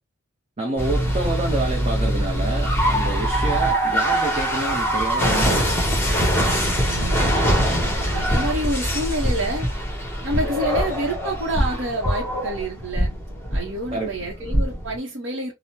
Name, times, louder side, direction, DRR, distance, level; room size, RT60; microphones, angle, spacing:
voice 1, 0.6-6.2 10.4-10.5 13.9-14.2, right 2 dB, 30° right, 0.7 m, -28 dB
sound 1, 0.8-15.0, equal, 10° left, 1.0 m, -23 dB
voice 2, 6.5-9.7 10.2-13.1 13.5-15.5, right 1 dB, 60° right, 0.8 m, -28 dB
3.6 x 2.0 x 2.8 m
head